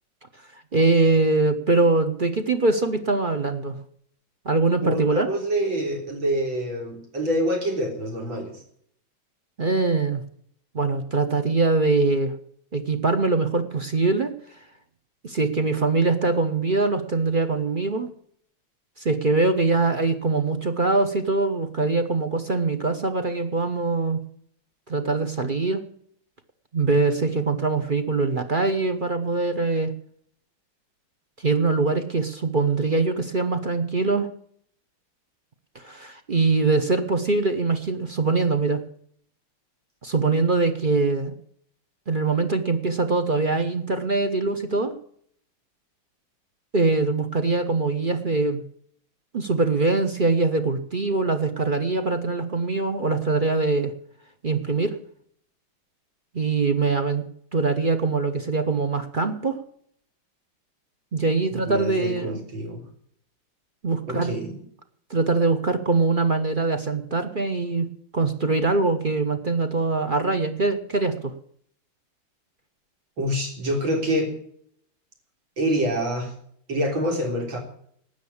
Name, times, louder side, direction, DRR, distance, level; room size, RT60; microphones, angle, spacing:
voice 1, 0.7-3.8 4.4-5.3 9.6-10.2 10.7-12.3 12.7-14.3 15.2-18.1 19.0-24.2 24.9-25.8 26.7-29.9 31.4-34.3 35.7-38.8 40.0-41.3 42.1-44.9 46.7-48.6 49.3-53.9 54.4-54.9 56.3-57.3 57.5-59.6 61.1-62.4 63.8-64.3 65.1-67.9 68.1-71.3, right 3 dB, 40° right, 8 dB, 0.8 m, -23 dB
voice 2, 4.8-8.6 61.5-62.8 64.1-64.6 73.2-74.3 75.6-76.3 76.7-77.6, equal, 75° right, 2 dB, 4.3 m, -26 dB
13.0 x 9.0 x 8.6 m, 0.65 s
omnidirectional pair, 2.2 m